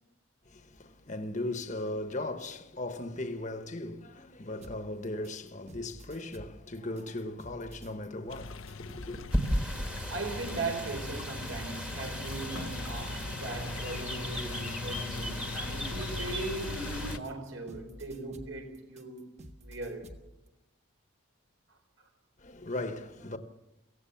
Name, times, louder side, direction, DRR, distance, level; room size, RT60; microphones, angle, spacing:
voice 1, 0.5-9.3 22.4-23.4, left 2 dB, 35° left, 1.2 m, -38 dB
sound 1, 4.6-11.1 11.5-20.3, equal, 35° right, 1.5 m, -50 dB
sound 2, 8.3-17.2, left 4 dB, 75° left, 0.8 m, -40 dB
sound 3, 9.3-17.2, equal, 5° right, 1.4 m, -36 dB
voice 2, 10.1-19.2 19.6-20.1 21.7-21.8, right 3 dB, 75° right, 4.6 m, -39 dB
23.5 x 16.5 x 7.1 m
head